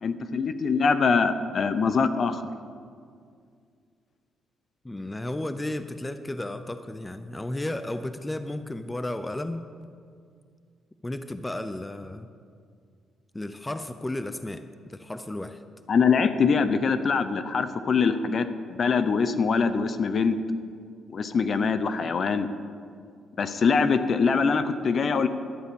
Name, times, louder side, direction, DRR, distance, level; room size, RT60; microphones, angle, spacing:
voice 1, 0.0-2.5 15.9-20.4 21.1-22.5 23.4-25.3, left 5 dB, 50° left, 11 dB, 0.7 m, -23 dB
voice 2, 4.8-9.9 11.0-12.3 13.3-14.6 14.9-15.6, left 1 dB, 15° left, 10 dB, 0.6 m, -33 dB
11.5 x 9.2 x 7.0 m, 2.2 s
cardioid pair, 90°, 0 cm